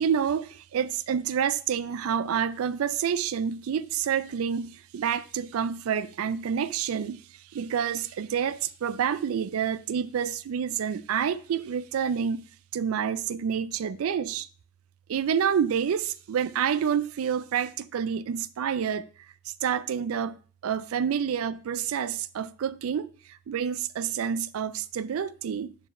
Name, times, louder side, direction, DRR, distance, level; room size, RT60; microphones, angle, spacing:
voice 1, 0.0-7.2 7.5-12.5 12.7-14.5 15.1-19.1 19.6-25.8, right 8 dB, 80° right, 0.4 m, -28 dB
5.0 x 4.7 x 4.1 m
head